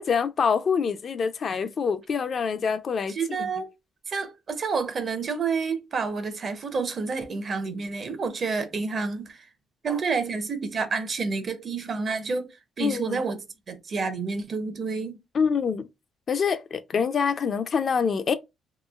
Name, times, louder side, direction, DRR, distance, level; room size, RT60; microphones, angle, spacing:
voice 1, 0.0-3.1 12.8-13.2 15.3-15.9 16.3-18.3, left 6 dB, 50° left, 0.4 m, -25 dB
voice 2, 3.1-3.7 4.1-9.4 9.8-12.5 12.8-15.2, right 4 dB, 45° right, 0.6 m, -29 dB
3.0 x 2.4 x 2.3 m
cardioid pair, 90°, 0 cm